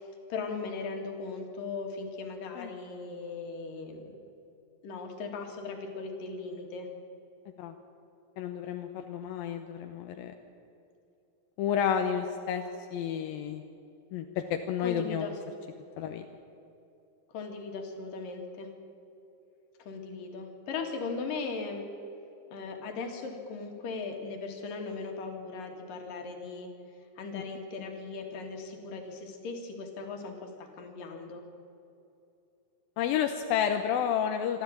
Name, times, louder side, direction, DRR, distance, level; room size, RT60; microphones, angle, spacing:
voice 1, 0.3-4.3 4.8-6.9 14.8-15.4 17.3-18.7 19.8-21.9 22.5-26.7 27.2-31.4, left 4 dB, 70° left, 4 dB, 3.8 m, -38 dB
voice 2, 8.4-10.3 11.6-12.6 12.9-13.6 14.1-15.3 16.0-16.3 33.0-34.6, left 8 dB, 85° left, 5 dB, 2.7 m, -30 dB
26.5 x 13.0 x 8.6 m, 2.8 s
omnidirectional pair, 4.1 m